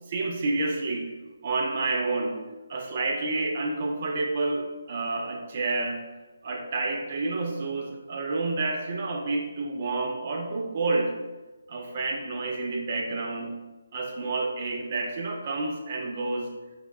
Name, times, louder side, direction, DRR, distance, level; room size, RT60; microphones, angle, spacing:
voice 1, 0.1-1.1 1.4-2.4 2.7-6.0 6.4-11.1 11.7-13.5 13.9-16.5, right 3 dB, 40° right, 1 dB, 0.6 m, -29 dB
5.7 x 2.3 x 2.3 m, 1.2 s
figure-of-eight pair, 150°, 0 cm